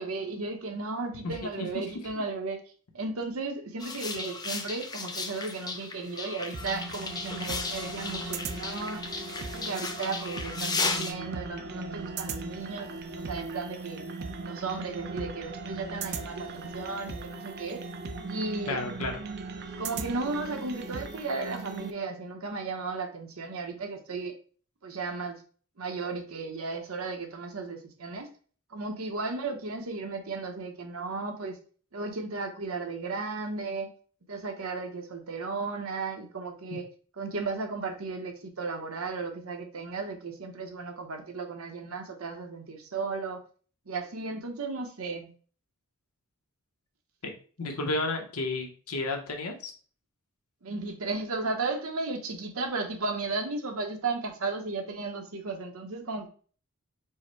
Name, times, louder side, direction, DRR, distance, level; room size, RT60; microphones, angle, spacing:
voice 1, 0.0-2.6 2.9-9.1 9.4-12.9 13.2-14.1 14.4-17.8 18.3-18.8 19.8-24.3 24.8-25.4 25.8-28.3 28.7-31.6 31.9-33.9 34.3-36.9 37.2-43.4 43.9-45.3 50.6-56.3, right 3 dB, 70° right, 5 dB, 0.9 m, -35 dB
voice 2, 1.2-1.8 18.7-19.2 36.7-36.8 47.2-49.7, left 2 dB, 80° left, 4 dB, 0.9 m, -32 dB
sound 1, 3.8-11.1, left 4 dB, 20° left, 0.4 m, -35 dB
sound 2, 6.5-21.9, right 3 dB, 45° right, 0.5 m, -38 dB
4.7 x 2.1 x 4.5 m, 0.41 s
head